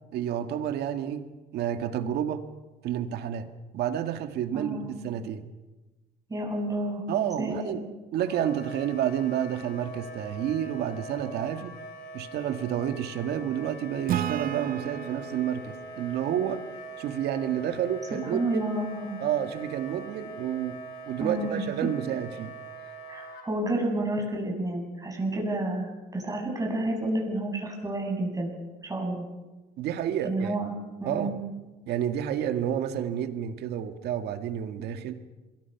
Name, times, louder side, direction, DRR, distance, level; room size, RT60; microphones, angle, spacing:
voice 1, 0.1-1.2 1.5-2.4 2.8-5.5 7.1-7.8 8.1-11.8 12.1-16.6 17.0-18.6 19.2-20.8 21.1-22.6 29.8-30.6 31.0-31.4 31.9-35.2, right 10 dB, 75° right, 8 dB, 1.8 m, -30 dB
voice 2, 4.5-4.9 6.3-7.0 7.4-7.8 18.3-19.2 21.2-21.6 23.1-28.5 28.8-29.3 30.2-30.7 31.0-31.4, right 1 dB, 20° right, 0 dB, 8.0 m, -30 dB
Wind instrument woodwind instrument, 8.2-23.5, right 1 dB, 75° left, 4.4 m, -43 dB
Acoustic guitar / Strum, 14.1-17.5, right 11 dB, 60° right, 0.9 m, -34 dB
27.0 x 22.0 x 5.9 m, 1.1 s
cardioid pair, 110°, 17 cm